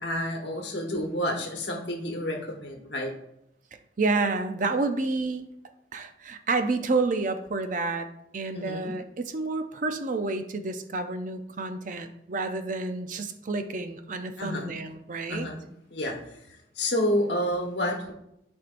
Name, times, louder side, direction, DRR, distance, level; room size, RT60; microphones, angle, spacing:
voice 1, 0.0-3.1 8.5-8.9 14.4-14.7 15.3-15.6 15.9-18.1, left 1 dB, 65° left, 0 dB, 1.2 m, -30 dB
voice 2, 4.0-5.5 5.9-8.1 8.3-15.5, right 3 dB, 45° right, 8 dB, 0.5 m, -29 dB
10.5 x 4.5 x 2.5 m, 0.81 s
head